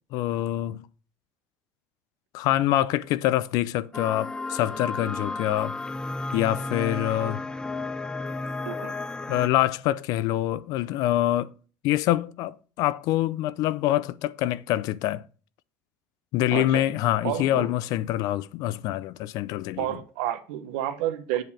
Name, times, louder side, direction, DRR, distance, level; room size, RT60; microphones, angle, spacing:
voice 1, 0.1-0.9 2.3-5.8 6.3-7.4 9.3-11.5 11.8-15.2 16.3-19.9, left 14 dB, 70° left, 0.5 m, -25 dB
sound 1, 3.9-9.5, left 3 dB, 10° left, 0.5 m, -33 dB
voice 2, 16.5-16.8 17.2-17.7 19.8-21.4, right 12 dB, 90° right, 1.1 m, -30 dB
7.9 x 4.9 x 7.3 m
cardioid pair, 115°, 7 cm